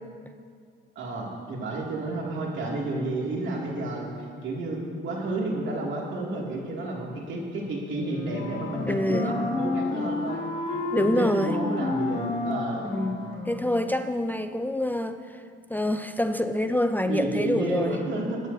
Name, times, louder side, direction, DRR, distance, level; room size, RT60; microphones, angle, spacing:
voice 1, 1.0-4.1 4.4-10.4 10.9-12.9 17.0-18.4, right 2 dB, 70° right, -2 dB, 2.4 m, -31 dB
Wind instrument woodwind instrument, 7.9-13.9, left 2 dB, 65° left, 2.5 m, -31 dB
voice 2, 8.9-9.3 10.9-11.6 12.8-15.4 15.7-17.9, left 1 dB, 10° left, 8 dB, 0.4 m, -26 dB
21.0 x 9.7 x 2.7 m, 2.2 s
cardioid pair, 90°, 20 cm